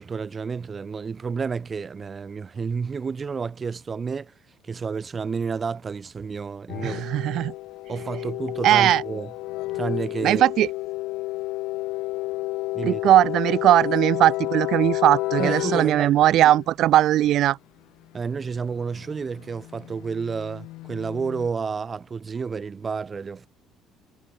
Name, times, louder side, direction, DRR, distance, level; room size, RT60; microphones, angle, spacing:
voice 1, 0.0-4.3 4.6-7.0 7.9-9.3 9.7-10.4 12.7-13.0 15.4-16.1 18.1-23.5, right 5 dB, 25° right, 1.9 m, -30 dB
sound 1, 6.7-16.6 18.8-21.5, left 19 dB, 80° left, 1.2 m, -31 dB
voice 2, 6.8-7.5 8.6-9.0 10.2-10.7 12.8-17.6, right 13 dB, 55° right, 1.7 m, -19 dB
cardioid pair, 155°, 0 cm